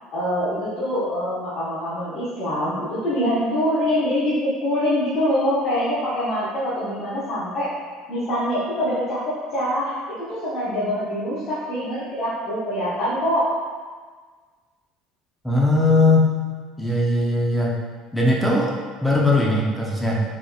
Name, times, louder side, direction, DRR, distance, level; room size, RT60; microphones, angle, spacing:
voice 1, 0.1-7.7 8.1-9.9 10.3-13.5, equal, 55° left, -12 dB, 1.0 m, -24 dB
voice 2, 15.4-16.3 16.8-17.7 18.1-20.2, left 2 dB, 5° left, -3 dB, 0.5 m, -19 dB
3.9 x 3.0 x 2.3 m, 1.5 s
supercardioid pair, 110°, 0 cm